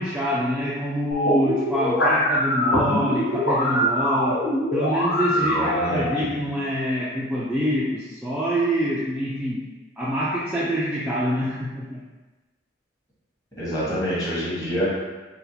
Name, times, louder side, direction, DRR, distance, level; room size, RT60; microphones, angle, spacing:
voice 1, 0.0-4.4 4.7-9.6 10.0-12.0, equal, 5° right, -9 dB, 0.3 m, -25 dB
sound 1, 1.1-6.1, equal, 85° left, 1.0 m, -23 dB
voice 2, 5.3-6.1 13.6-14.9, equal, 20° left, -9 dB, 1.0 m, -27 dB
3.9 x 2.2 x 2.8 m, 1.2 s
head